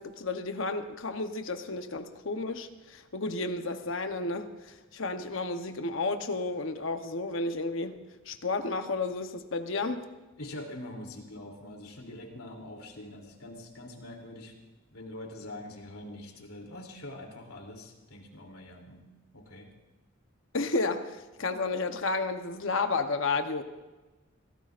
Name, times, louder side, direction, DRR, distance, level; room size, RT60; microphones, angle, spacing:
voice 1, 0.0-8.0 8.3-10.1 20.5-23.6, left 3 dB, 60° left, 7 dB, 0.9 m, -32 dB
voice 2, 10.4-14.5 14.9-19.0 19.3-19.7, left 1 dB, 85° left, 1 dB, 3.1 m, -44 dB
25.5 x 17.0 x 2.5 m, 1.2 s
head